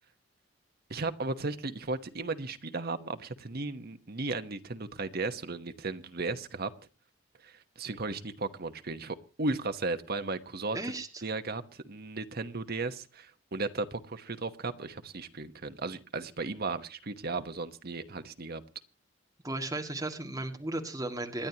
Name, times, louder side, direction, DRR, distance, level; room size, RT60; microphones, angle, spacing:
voice 1, 0.9-6.7 7.4-10.8 11.2-18.6, right 3 dB, 50° right, 9 dB, 1.1 m, -35 dB
voice 2, 10.7-11.1 19.4-21.5, right 2 dB, 15° right, 3 dB, 2.0 m, -35 dB
27.5 x 10.5 x 2.9 m, 0.34 s
head